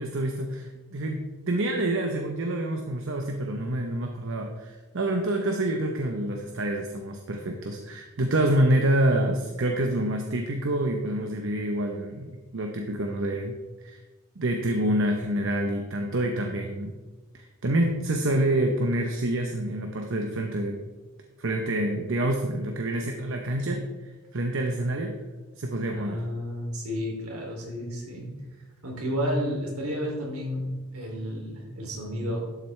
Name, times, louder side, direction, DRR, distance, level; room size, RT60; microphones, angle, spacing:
voice 1, 0.0-14.0 14.4-17.0 17.3-20.8 21.4-25.2 25.6-26.2, right 1 dB, 60° right, 3 dB, 0.8 m, -27 dB
voice 2, 25.9-28.3 28.8-32.4, equal, 75° right, -1 dB, 2.8 m, -31 dB
12.0 x 7.7 x 3.2 m, 1.2 s
head